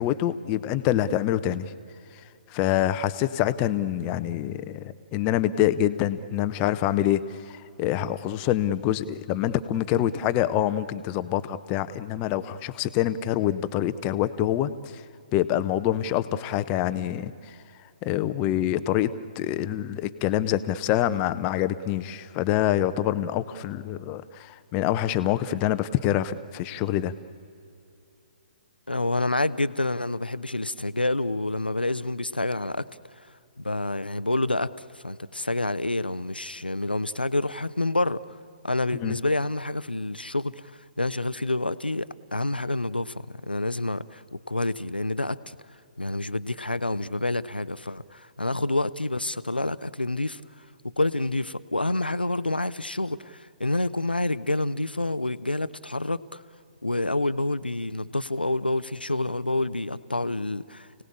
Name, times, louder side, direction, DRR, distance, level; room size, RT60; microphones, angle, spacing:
voice 1, 0.0-1.7 2.5-14.7 15.3-17.3 18.0-27.1 38.9-39.2, left 12 dB, 25° left, 13 dB, 0.9 m, -26 dB
voice 2, 28.9-32.9 33.6-34.7 34.9-38.2 38.6-40.7 41.0-43.1 43.4-45.6 46.0-50.4 50.8-56.4 56.8-61.0, left 2 dB, 85° left, 15 dB, 0.8 m, -28 dB
29.5 x 18.5 x 8.6 m, 2.7 s
figure-of-eight pair, 125°, 5 cm